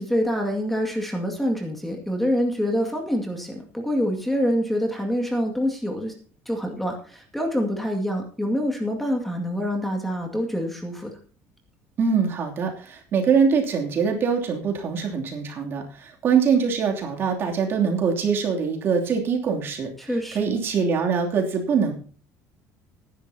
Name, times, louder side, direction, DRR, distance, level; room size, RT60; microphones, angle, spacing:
voice 1, 0.0-6.1 6.5-11.1 20.0-20.5, equal, 5° left, 2 dB, 2.1 m, -26 dB
voice 2, 12.0-19.9 20.3-21.9, right 6 dB, 40° right, 2 dB, 2.9 m, -23 dB
19.5 x 10.5 x 2.8 m, 0.41 s
cardioid pair, 150°, 6 cm